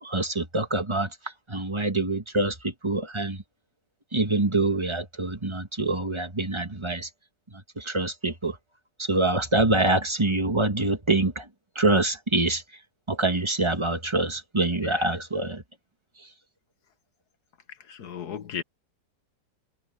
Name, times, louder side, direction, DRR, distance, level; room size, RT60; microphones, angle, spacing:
voice 1, 0.0-3.4 4.1-7.1 7.7-8.6 9.0-11.5 11.7-12.6 13.1-15.6 16.2-16.3, right 2 dB, 20° right, 1.7 m, -25 dB
voice 2, 18.0-18.6, left 8 dB, 80° left, 1.9 m, -34 dB
omnidirectional pair, 1.7 m